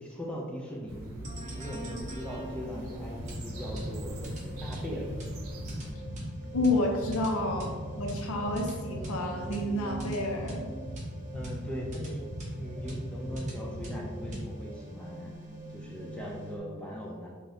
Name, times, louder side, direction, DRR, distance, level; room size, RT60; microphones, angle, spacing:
voice 1, 0.0-5.1 11.3-12.2 12.5-15.3 15.7-17.3, equal, 5° left, -3 dB, 0.3 m, -39 dB
sound 1, 0.9-5.9, right 1 dB, 70° right, 0.5 m, -43 dB
sound 2, 1.2-16.6, equal, 35° right, 0.7 m, -39 dB
voice 2, 6.5-10.7, left 2 dB, 70° left, 0 dB, 0.6 m, -30 dB
2.6 x 2.3 x 3.3 m, 1.5 s
head